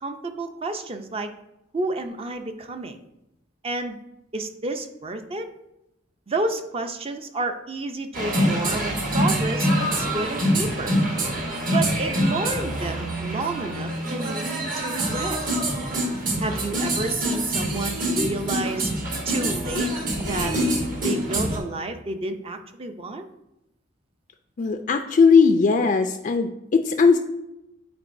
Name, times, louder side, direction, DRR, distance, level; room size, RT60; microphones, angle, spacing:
voice 1, 0.0-1.3 1.7-3.0 3.6-4.0 4.3-5.5 6.3-10.9 11.7-15.4 16.4-18.9 19.3-19.9 20.2-20.5 21.0-23.2, right 2 dB, 30° right, 7 dB, 0.5 m, -30 dB
sound 1, 8.1-21.6, right 1 dB, 45° right, 1.2 m, -25 dB
voice 2, 24.6-27.2, left 5 dB, 45° left, 6 dB, 0.3 m, -18 dB
9.4 x 4.4 x 2.6 m, 0.87 s
head